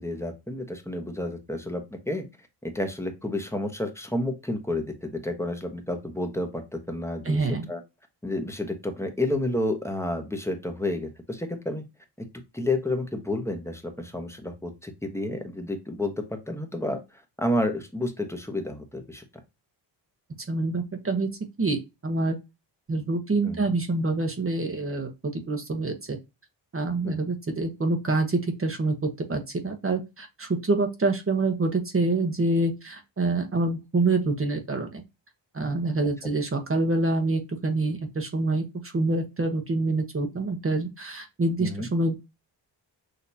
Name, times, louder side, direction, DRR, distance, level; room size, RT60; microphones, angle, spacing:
voice 1, 0.0-2.2 2.6-7.8 8.2-11.8 12.2-12.3 12.5-19.2 23.4-23.7 27.0-27.2 41.6-41.9, left 1 dB, 5° left, 5 dB, 1.1 m, -30 dB
voice 2, 7.2-7.7 20.5-21.3 21.6-22.4 22.9-26.2 26.7-35.0 35.5-42.1, right 2 dB, 30° right, 4 dB, 1.0 m, -26 dB
6.6 x 2.9 x 2.7 m, 0.24 s
cardioid pair, 90°, 44 cm